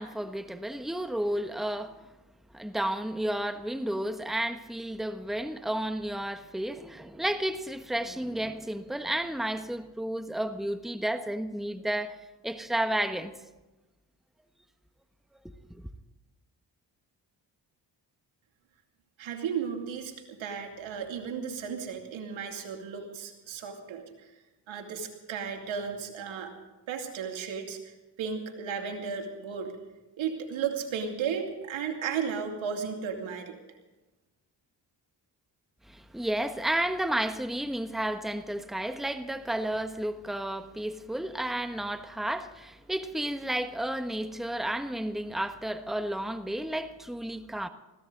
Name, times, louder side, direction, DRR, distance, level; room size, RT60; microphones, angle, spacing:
voice 1, 0.0-2.0 2.5-12.2 12.4-13.3 15.7-15.9 35.9-47.7, right 1 dB, ahead, 1.3 m, -32 dB
voice 2, 19.2-24.3 24.7-26.5 26.9-29.7 30.2-33.6, right 6 dB, 85° right, 2.7 m, -34 dB
20.5 x 16.0 x 3.9 m
supercardioid pair, 50°, 46 cm